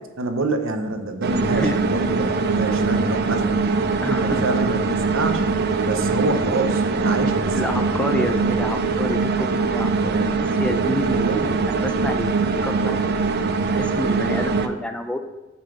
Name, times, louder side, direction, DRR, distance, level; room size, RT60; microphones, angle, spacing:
voice 1, 0.2-3.6 4.1-5.4 5.8-7.7 10.0-10.2 11.1-11.5, right 2 dB, 80° right, 6 dB, 0.8 m, -26 dB
sound 1, 1.2-14.7, right 4 dB, 55° right, 0.5 m, -22 dB
voice 2, 4.0-4.4 7.4-13.2 13.6-15.2, left 1 dB, 5° left, 6 dB, 0.4 m, -29 dB
8.1 x 3.9 x 6.4 m, 1.1 s
head